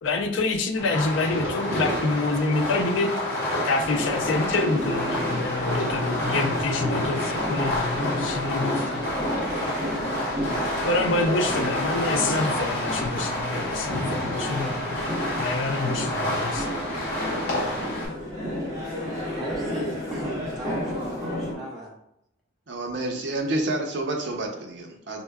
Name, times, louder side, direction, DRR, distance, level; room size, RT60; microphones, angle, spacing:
voice 1, 0.0-3.1 3.6-9.1 10.8-15.0 15.4-16.7, left 3 dB, 80° left, 5 dB, 0.5 m, -27 dB
Fireworks, 0.8-18.1, left 1 dB, 50° left, 1.1 m, -29 dB
sound 1, 3.8-21.5, equal, 20° right, 1.1 m, -32 dB
voice 2, 18.9-21.9, equal, ahead, -5 dB, 0.7 m, -36 dB
voice 3, 22.7-25.2, right 2 dB, 65° right, 2 dB, 0.6 m, -29 dB
5.3 x 2.1 x 2.3 m, 0.77 s
head